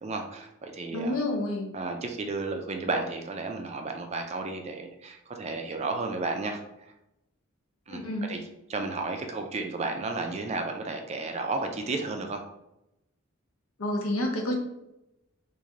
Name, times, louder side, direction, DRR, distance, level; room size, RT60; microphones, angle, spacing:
voice 1, 0.0-1.2 1.7-6.6 7.9-8.0 8.3-8.4 8.7-12.4, right 3 dB, 30° right, 4 dB, 0.3 m, -32 dB
voice 2, 0.9-1.7 7.9-8.3 13.8-14.6, left 1 dB, 85° left, 1 dB, 0.8 m, -29 dB
3.1 x 2.6 x 3.7 m, 0.88 s
head